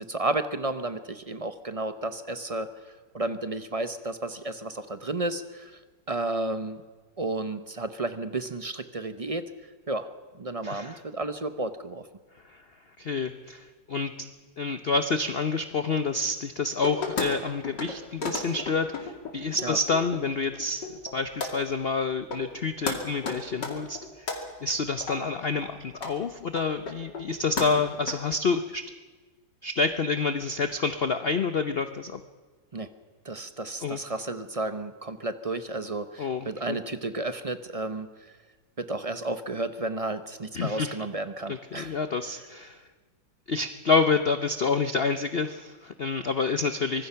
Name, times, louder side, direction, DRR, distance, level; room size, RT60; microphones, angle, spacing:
voice 1, 0.0-2.7 3.1-5.7 6.1-6.8 7.2-9.4 9.9-10.1 10.4-12.1 19.6-19.8 32.7-32.9 33.2-38.1 38.8-42.0, right 2 dB, 30° right, 10 dB, 0.6 m, -32 dB
voice 2, 10.6-11.0 12.4-12.6 13.0-14.3 14.6-24.3 24.6-28.9 29.6-32.2 33.8-34.0 36.2-36.8 40.5-41.0 41.5-42.8 43.5-47.1, left 4 dB, 50° left, 9 dB, 0.7 m, -28 dB
sound 1, 16.8-17.3 17.6-17.9 18.2-20.2 20.5-21.1 21.4-21.5 22.0-22.1 22.3-22.6 22.9-23.0 23.2-24.4 25.0-25.2 25.6-25.7 25.9-26.1 26.6-27.3 27.6-28.1, left 4 dB, 75° left, 3.2 m, -33 dB
24.5 x 20.0 x 5.8 m, 1.4 s
omnidirectional pair, 1.9 m